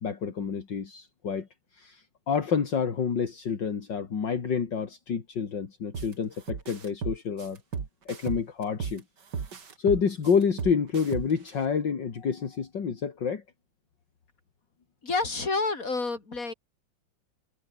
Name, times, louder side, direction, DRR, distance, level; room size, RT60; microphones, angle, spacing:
voice 1, 0.0-1.5 1.7-7.6 8.1-9.0 9.8-13.4, left 6 dB, 65° left, 2.9 m, -28 dB
sound 1, 5.9-6.1 6.5-9.0 9.3-11.5, right 6 dB, 55° right, 2.8 m, -34 dB
voice 2, 15.0-16.5, left 3 dB, 40° left, 4.5 m, -29 dB
omnidirectional pair, 2.2 m